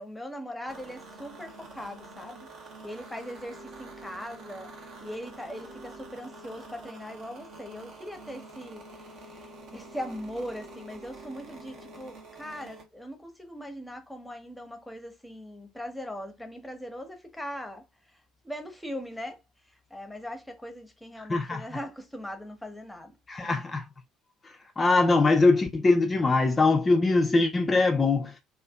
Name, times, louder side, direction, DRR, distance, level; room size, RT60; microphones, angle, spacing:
voice 1, 0.0-2.5 2.8-17.8 18.4-19.4 19.9-23.1 23.4-23.5, equal, 5° left, 0.7 m, -40 dB
sound 1, 0.7-12.9, right 2 dB, 55° right, 0.6 m, -46 dB
voice 2, 21.2-21.6 23.3-23.8 24.8-28.4, left 3 dB, 25° left, 0.3 m, -22 dB
2.5 x 2.3 x 2.2 m
figure-of-eight pair, 55°, 0 cm